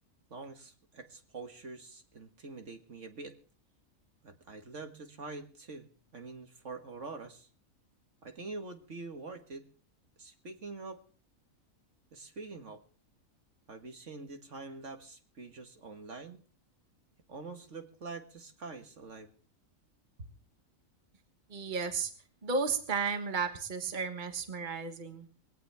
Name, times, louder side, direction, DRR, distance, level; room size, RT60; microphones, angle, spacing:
voice 1, 0.3-3.3 4.2-7.5 8.2-9.7 10.2-11.0 12.1-12.8 13.7-16.4 17.3-19.3 20.2-20.3, right 3 dB, 60° right, 5 dB, 2.0 m, -45 dB
voice 2, 21.5-22.1 22.4-25.3, right 5 dB, 35° right, 6 dB, 1.6 m, -33 dB
21.5 x 17.0 x 3.5 m, 0.41 s
omnidirectional pair, 1.4 m